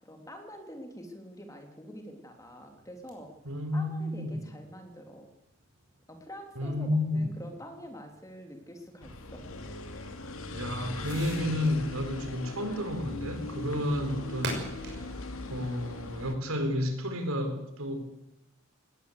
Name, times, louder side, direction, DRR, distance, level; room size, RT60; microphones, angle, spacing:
voice 1, 0.0-3.3 3.7-5.3 6.1-9.5 10.5-10.6, equal, 15° left, 4 dB, 3.0 m, -46 dB
Fireworks, 2.4-17.0, right 2 dB, 50° right, 6.1 m, -48 dB
voice 2, 3.4-4.5 6.6-7.3 10.5-14.7 15.1-18.0, left 1 dB, 75° right, 6 dB, 4.4 m, -31 dB
sound 1, 9.0-16.4, left 2 dB, 70° left, 2.4 m, -39 dB
19.0 x 19.0 x 8.3 m, 0.85 s
head